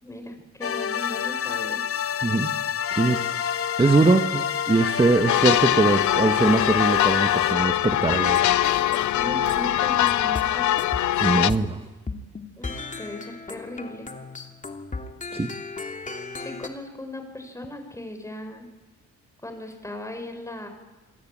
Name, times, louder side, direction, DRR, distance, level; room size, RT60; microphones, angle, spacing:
voice 1, 0.0-1.8 9.1-10.9 12.6-14.1 16.4-18.7 19.4-20.7, left 1 dB, 10° left, 6 dB, 6.3 m, -37 dB
sound 1, 0.6-7.5, left 8 dB, 50° left, 1.2 m, -28 dB
voice 2, 2.9-3.4 3.8-8.4 11.2-11.8 15.3-15.5, right 3 dB, 20° right, 5 dB, 1.8 m, -22 dB
sound 2, 5.3-11.5, left 13 dB, 70° left, 0.8 m, -22 dB
sound 3, 8.1-10.5 10.8-11.7 12.1-16.7, left 3 dB, 25° left, 2.9 m, -36 dB
28.0 x 20.5 x 9.0 m, 1.2 s
cardioid pair, 90°, 30 cm